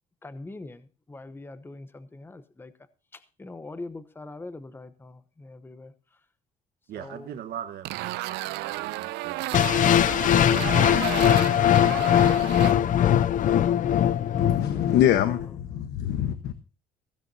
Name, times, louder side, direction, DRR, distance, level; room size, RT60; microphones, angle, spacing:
voice 1, 0.2-2.7 3.1-5.9 6.9-7.4 12.6-13.0 14.7-15.0 15.2-15.3, left 2 dB, 15° left, 0.9 m, -42 dB
voice 2, 6.9-9.8, right 10 dB, 65° right, 1.3 m, -40 dB
sound 1, 7.8-12.7, right 18 dB, 85° right, 0.6 m, -33 dB
sound 2, 9.5-15.5, left 10 dB, 50° left, 0.6 m, -21 dB
voice 3, 14.4-16.5, left 11 dB, 80° left, 1.1 m, -24 dB
16.0 x 16.0 x 2.7 m
cardioid pair, 110°, 17 cm